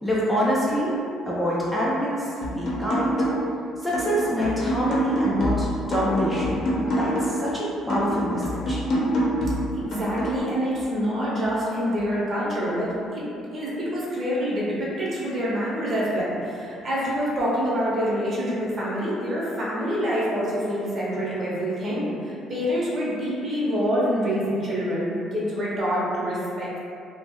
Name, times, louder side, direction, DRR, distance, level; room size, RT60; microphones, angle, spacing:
voice 1, 0.0-0.9 1.3-3.1 3.8-6.6 7.0-8.8, equal, ahead, -8 dB, 0.4 m, -25 dB
sound 1, 2.4-3.6 3.9-7.5 7.9-10.4, equal, 55° left, 0.6 m, -26 dB
voice 2, 9.7-13.2 13.5-26.8, equal, 40° right, -6 dB, 0.7 m, -26 dB
2.3 x 2.0 x 3.5 m, 2.6 s
cardioid pair, 110°, 0 cm